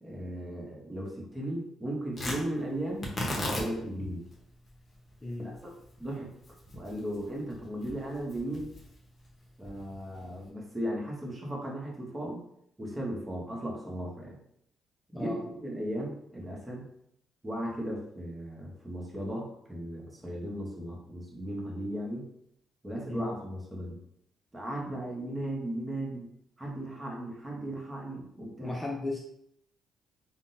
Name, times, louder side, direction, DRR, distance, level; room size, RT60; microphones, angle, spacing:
voice 1, 0.0-4.3 5.4-5.7 6.0-6.4 6.7-8.7 9.6-12.4 12.8-14.4 15.1-16.9 17.4-22.3 22.8-24.0 24.5-26.3 26.6-28.8, right 1 dB, 15° right, -2 dB, 0.9 m, -36 dB
Tearing, 2.1-10.5, left 1 dB, 35° left, 0.9 m, -39 dB
voice 2, 5.2-5.6 15.1-15.4 23.1-23.3 28.6-29.2, left 2 dB, 15° left, -1 dB, 0.4 m, -35 dB
3.6 x 2.2 x 2.6 m, 0.74 s
cardioid pair, 90°, 0 cm